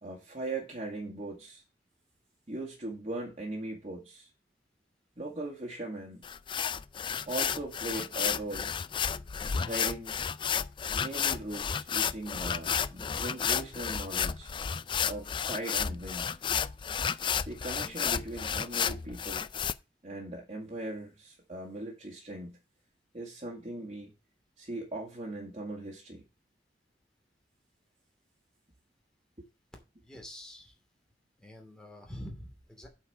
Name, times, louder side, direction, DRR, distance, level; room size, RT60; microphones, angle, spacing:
voice 1, 0.0-1.6 2.5-4.3 5.2-6.2 7.3-8.7 9.6-10.1 10.9-14.5 15.1-16.6 17.4-19.5 20.0-22.6 23.1-24.1 24.6-26.2 29.4-29.5, right 2 dB, 35° right, -2 dB, 2.0 m, -39 dB
sound 1, 6.2-19.7, left 7 dB, 30° left, 0.3 m, -32 dB
voice 2, 30.0-30.8 31.4-32.9, left 1 dB, 5° left, 1 dB, 2.6 m, -46 dB
8.3 x 4.7 x 6.8 m, 0.29 s
head